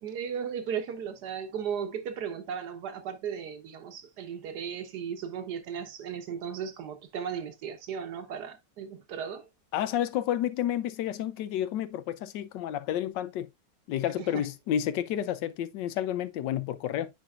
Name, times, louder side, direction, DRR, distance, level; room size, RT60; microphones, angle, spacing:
voice 1, 0.0-9.5 14.2-14.4, right 7 dB, 70° right, 1.6 m, -36 dB
voice 2, 9.7-13.5 13.9-17.1, left 11 dB, 90° left, 1.3 m, -30 dB
9.1 x 4.6 x 2.4 m
omnidirectional pair, 1.9 m